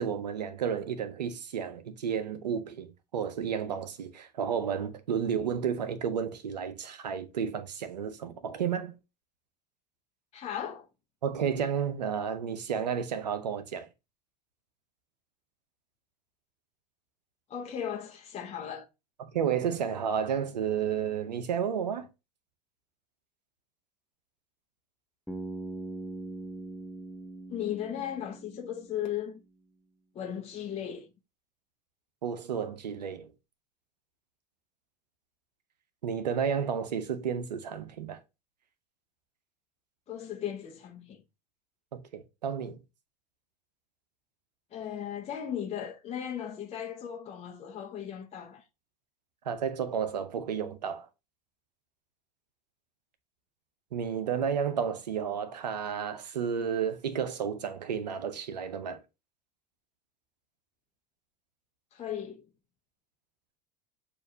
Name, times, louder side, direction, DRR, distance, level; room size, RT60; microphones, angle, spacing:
voice 1, 0.0-8.9 11.2-13.9 19.2-22.1 32.2-33.3 36.0-38.2 41.9-42.8 49.5-51.1 53.9-59.0, right 7 dB, 85° right, 0.7 m, -32 dB
voice 2, 10.3-10.9 17.5-18.9 27.5-29.4 30.1-31.1 40.1-41.2 44.7-48.6 61.9-62.4, left 9 dB, 30° left, 0.8 m, -36 dB
Bass guitar, 25.3-29.3, right 2 dB, ahead, 0.7 m, -41 dB
6.4 x 2.6 x 2.6 m
hypercardioid pair, 80°, 21 cm